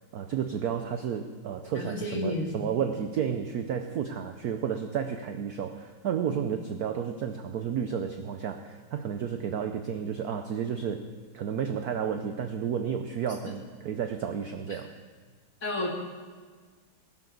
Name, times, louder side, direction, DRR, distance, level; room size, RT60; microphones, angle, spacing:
voice 1, 0.0-11.1 11.3-14.9, right 8 dB, 75° right, 7 dB, 0.8 m, -32 dB
voice 2, 1.7-2.5 6.3-6.4 15.6-15.9, left 2 dB, 40° left, -1 dB, 2.5 m, -31 dB
20.0 x 12.0 x 3.9 m, 1.5 s
omnidirectional pair, 2.4 m